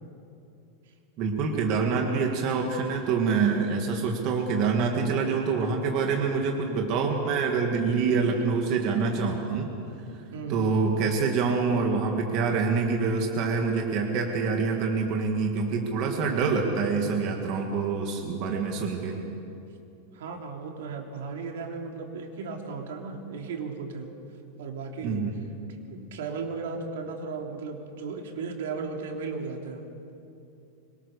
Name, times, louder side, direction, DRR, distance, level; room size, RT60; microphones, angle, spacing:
voice 1, 1.2-9.7 10.5-19.2 25.0-25.3, right 5 dB, 35° right, 2 dB, 2.0 m, -26 dB
voice 2, 10.3-10.7 20.1-24.1 24.6-25.2 25.8-29.9, right 4 dB, 75° right, 2 dB, 3.3 m, -35 dB
25.5 x 22.5 x 6.7 m, 2.7 s
supercardioid pair, 180°, 0 cm